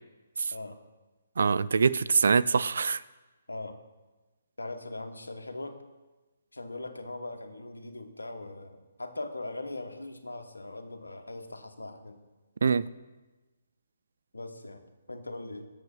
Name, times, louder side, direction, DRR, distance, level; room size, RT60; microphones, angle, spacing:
voice 1, 1.4-3.0 12.6-12.9, right 5 dB, 65° right, 0.3 m, -24 dB
voice 2, 4.6-5.8 6.5-12.2 14.3-14.8 15.1-15.7, left 2 dB, 90° left, 1.1 m, -40 dB
7.9 x 7.3 x 5.5 m
figure-of-eight pair, 140°, 0 cm